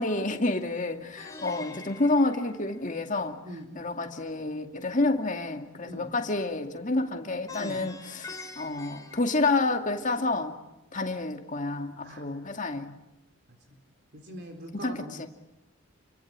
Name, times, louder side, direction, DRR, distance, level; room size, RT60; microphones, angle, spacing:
voice 1, 0.0-3.4 3.7-10.6 10.9-12.9 14.8-15.3, left 2 dB, 35° left, 2.3 m, -29 dB
Plucked string instrument, 1.2-3.3 7.5-10.1, left 3 dB, 15° left, 4.2 m, -45 dB
voice 2, 14.1-15.3, right 1 dB, 50° right, 3.9 m, -43 dB
29.5 x 24.5 x 7.5 m
head